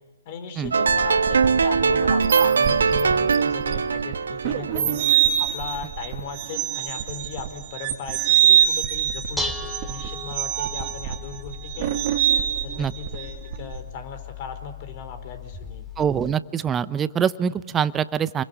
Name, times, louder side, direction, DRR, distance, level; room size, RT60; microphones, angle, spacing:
voice 1, 0.2-5.0 5.4-12.0 12.6-15.9, left 6 dB, 40° left, 9 dB, 4.4 m, -37 dB
sound 1, 0.6-13.8, right 10 dB, 45° right, 2.4 m, -24 dB
sound 2, 0.7-5.8, right 5 dB, 80° right, 1.3 m, -22 dB
Dishes pots and pans, 8.9-16.3, left 3 dB, ahead, 2.3 m, -37 dB
voice 2, 16.0-18.4, right 8 dB, 15° right, 16 dB, 0.8 m, -24 dB
30.0 x 22.5 x 8.2 m, 1.3 s
hypercardioid pair, 130°, 0 cm